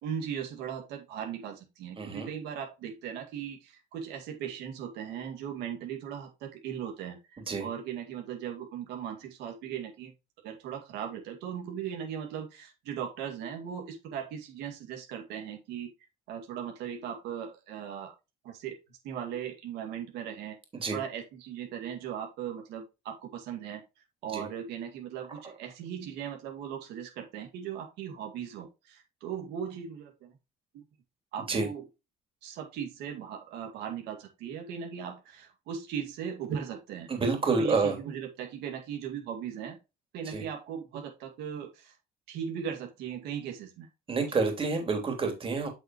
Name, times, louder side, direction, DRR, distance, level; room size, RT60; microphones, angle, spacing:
voice 1, 0.0-10.1 10.4-15.9 16.3-18.1 18.4-18.8 19.0-20.6 20.9-23.8 24.2-30.4 30.7-30.8 31.3-31.8 32.4-37.1 37.6-39.8 40.1-42.0 42.3-43.9 44.3-44.4, right 8 dB, 90° right, 2 dB, 2.1 m, -38 dB
voice 2, 2.0-2.3 7.5-7.7 20.7-21.0 24.3-24.4 31.5-31.7 37.1-38.0 40.3-40.4 44.1-45.7, right 4 dB, 30° right, 3 dB, 3.0 m, -28 dB
7.5 x 6.2 x 3.0 m, 0.26 s
cardioid pair, 110°, 17 cm